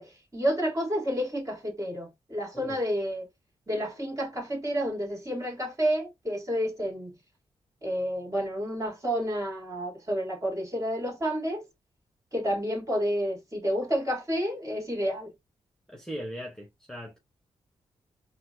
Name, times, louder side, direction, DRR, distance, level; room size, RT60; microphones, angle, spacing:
voice 1, 0.0-3.3 3.7-7.2 7.8-11.7 12.3-15.3, equal, 25° right, 2.5 m, -30 dB
voice 2, 15.9-17.2, equal, 5° left, 1.3 m, -39 dB
4.2 x 2.4 x 2.8 m
supercardioid pair, 50°, 12 cm